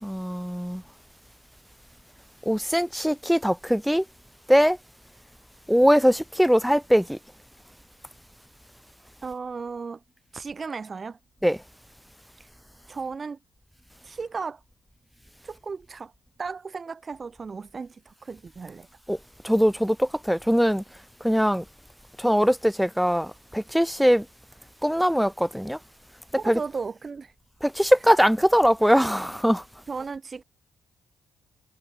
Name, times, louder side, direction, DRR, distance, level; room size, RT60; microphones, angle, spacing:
voice 1, 0.0-0.8 2.5-4.0 4.5-4.8 5.7-7.2 11.4-11.6 19.1-19.2 19.4-20.8 21.2-21.6 22.2-24.2 24.8-25.8 26.5-26.6 27.6-29.6, equal, ahead, 4.1 m, -21 dB
voice 2, 9.2-10.0 10.3-11.2 12.4-12.5 12.9-13.4 14.0-14.6 15.4-16.1 16.4-18.9 26.4-27.3 29.9-30.4, right 5 dB, 35° right, 4.6 m, -35 dB
cardioid pair, 90°, 0 cm